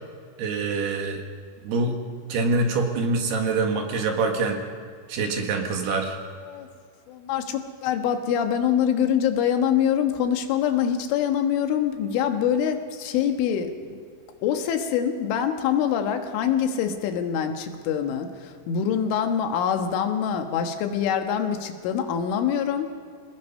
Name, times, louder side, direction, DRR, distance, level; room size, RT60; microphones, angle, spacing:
voice 1, 0.4-1.2 1.6-2.0 2.3-4.6 5.1-6.2, right 3 dB, 65° right, 3 dB, 3.5 m, -25 dB
voice 2, 7.1-14.0 14.4-22.9, left 8 dB, 85° left, 5 dB, 3.9 m, -25 dB
26.5 x 19.0 x 5.5 m, 2.1 s
omnidirectional pair, 5.4 m